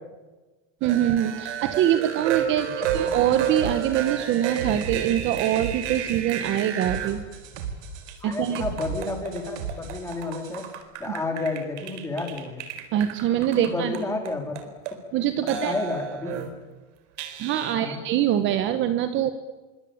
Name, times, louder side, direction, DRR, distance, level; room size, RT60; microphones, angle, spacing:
voice 1, 0.8-2.7 2.9-7.2 8.2-8.6 12.9-13.9 15.1-15.7 17.4-19.3, right 11 dB, 30° right, 10 dB, 1.3 m, -24 dB
sound 1, 0.8-7.2 8.1-14.9 15.5-16.6 17.2-17.8, right 9 dB, 65° right, 4.4 m, -32 dB
voice 2, 2.6-3.2 8.2-10.7 11.0-12.6 13.5-14.7 15.4-16.5 17.7-18.0, left 3 dB, 5° left, 3 dB, 3.9 m, -31 dB
sound 2, 2.8-10.7, right 6 dB, 80° right, 5.3 m, -37 dB
27.0 x 24.5 x 8.9 m, 1.2 s
supercardioid pair, 165°, 38 cm